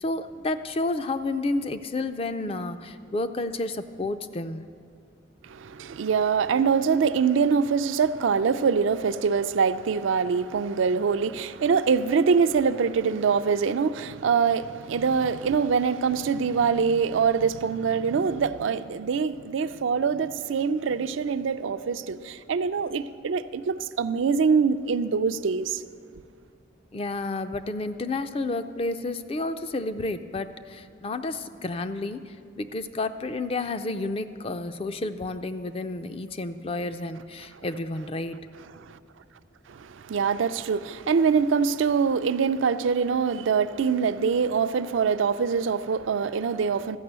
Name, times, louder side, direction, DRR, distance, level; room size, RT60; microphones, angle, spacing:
voice 1, 0.0-4.7 26.9-38.4, left 2 dB, 30° left, 0.4 m, -31 dB
voice 2, 5.5-25.8 39.7-47.0, right 6 dB, 85° right, 0.4 m, -24 dB
14.0 x 6.1 x 8.0 m
head